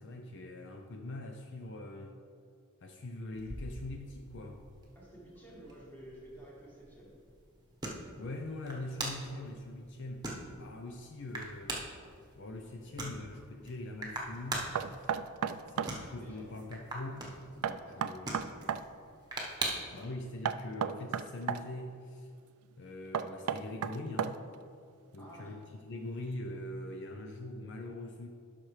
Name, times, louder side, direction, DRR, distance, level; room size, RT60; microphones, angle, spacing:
voice 1, 0.0-2.2 2.8-4.7 8.2-11.8 12.4-15.1 15.7-17.3 17.6-18.5 19.9-22.3 22.8-24.4 25.1-28.3, left 2 dB, 55° left, 4 dB, 0.5 m, -43 dB
sound 1, 3.3-20.1, right 2 dB, 20° right, 1.1 m, -43 dB
voice 2, 5.0-7.1 16.2-16.5 17.8-18.0 19.6-19.9 25.2-25.5, right 1 dB, 10° left, -6 dB, 1.9 m, -52 dB
Knock, 14.7-16.0 17.6-18.9 20.4-21.6 23.1-24.6, right 8 dB, 85° right, 0.3 m, -33 dB
12.0 x 5.7 x 3.2 m, 2.3 s
head